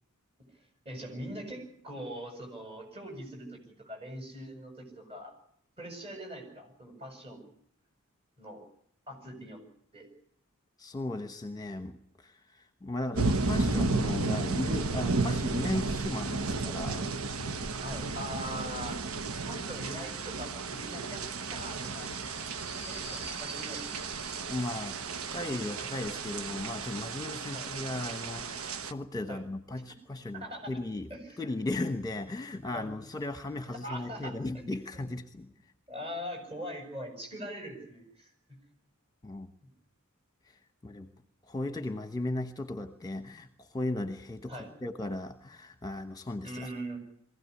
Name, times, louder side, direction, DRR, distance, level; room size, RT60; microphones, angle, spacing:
voice 1, 0.6-5.3 5.8-7.5 8.4-8.6 9.1-9.6 9.9-10.1 15.2-15.4 17.8-19.0 19.4-21.2 21.5-22.1 22.9-23.8 27.5-27.7 29.3-29.4 30.3-30.8 31.1-31.4 32.5-32.9 33.7-34.6 34.9-35.1 35.9-38.3 39.6-39.7 44.5-44.7 46.4-47.0, equal, 25° right, 4 dB, 7.6 m, -42 dB
voice 2, 10.8-11.9 12.2-17.1 24.5-31.1 31.4-35.5 39.2-39.5 40.8-41.1 41.5-46.7, left 2 dB, 20° left, 8 dB, 1.1 m, -36 dB
sound 1, 13.2-28.9, right 3 dB, 80° right, 1.1 m, -33 dB
Subway metro underground, 20.5-26.1, right 1 dB, 5° right, 3.5 m, -48 dB
23.0 x 16.5 x 9.8 m, 0.66 s
head